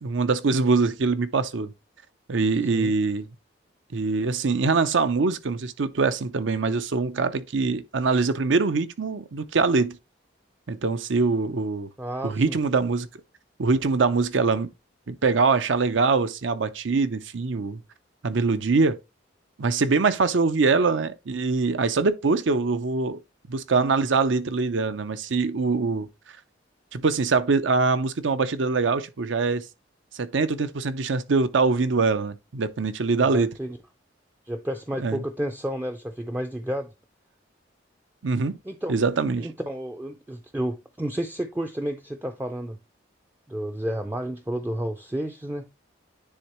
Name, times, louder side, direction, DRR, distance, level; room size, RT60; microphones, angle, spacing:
voice 1, 0.0-1.7 2.3-3.3 3.9-10.0 10.7-11.9 12.2-13.1 13.6-14.7 15.1-17.8 18.2-19.0 19.6-23.2 23.5-26.1 26.9-29.6 30.2-33.5 35.0-35.2 38.2-38.6 38.9-39.5, right 4 dB, 80° right, 0.6 m, -23 dB
voice 2, 2.6-2.9 12.0-12.6 33.2-33.8 34.5-36.9 38.6-38.9 39.4-42.8 43.5-45.7, right 1 dB, 10° right, 0.3 m, -31 dB
9.8 x 3.6 x 2.9 m
head